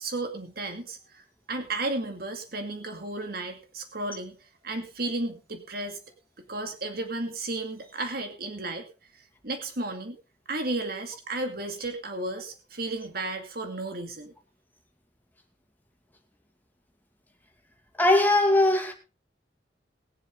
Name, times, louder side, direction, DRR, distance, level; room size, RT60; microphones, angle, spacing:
voice 1, 0.0-6.0 6.5-8.9 9.4-10.2 10.5-14.3, right 2 dB, 60° right, 2.3 m, -33 dB
voice 2, 18.0-18.9, left 2 dB, 10° left, 2.3 m, -20 dB
20.5 x 7.3 x 3.8 m
head